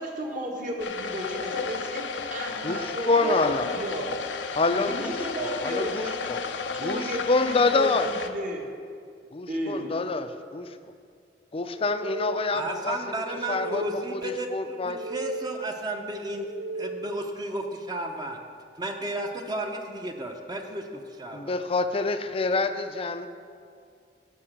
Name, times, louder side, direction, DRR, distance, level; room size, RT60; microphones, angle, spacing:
voice 1, 0.0-4.2 4.7-6.3 6.7-8.6 9.5-9.9, right 1 dB, 45° right, -1 dB, 1.6 m, -34 dB
sound 1, 0.8-8.3, left 5 dB, 85° left, 0.6 m, -33 dB
voice 2, 2.6-3.7 4.6-5.1 5.4-6.4 6.8-8.1 9.3-10.8 11.5-13.2 13.5-15.0 21.3-23.3, left 3 dB, 30° left, 9 dB, 0.5 m, -27 dB
sound 2, 11.7-12.8 13.2-14.3 14.7-15.8 16.2-17.4, right 3 dB, 75° right, 0.6 m, -37 dB
voice 3, 12.5-16.5 16.7-18.4 18.8-21.5, right 1 dB, 25° right, 3 dB, 0.8 m, -33 dB
11.5 x 5.4 x 7.4 m, 2.2 s
head